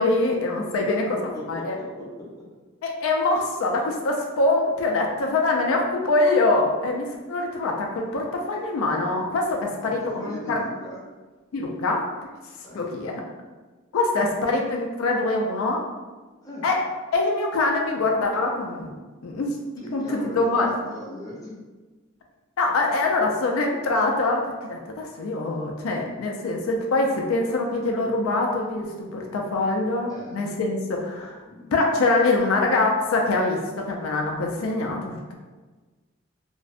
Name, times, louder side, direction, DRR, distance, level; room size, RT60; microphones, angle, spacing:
voice 1, 0.0-1.2 1.5-1.8 2.8-10.6 11.5-12.1 12.7-13.2 13.9-15.8 16.6-16.8 17.1-18.9 19.2-19.6 19.9-20.7 22.6-28.9 29.1-31.4 31.7-35.3, left 2 dB, 85° left, 1 dB, 0.4 m, -24 dB
voice 2, 0.8-2.3 9.8-11.0 12.6-12.9 13.9-14.3 16.4-16.6 19.8-21.5 30.1-30.4 31.4-31.7, left 1 dB, 20° left, -5 dB, 0.5 m, -39 dB
2.5 x 2.0 x 2.4 m, 1.3 s
head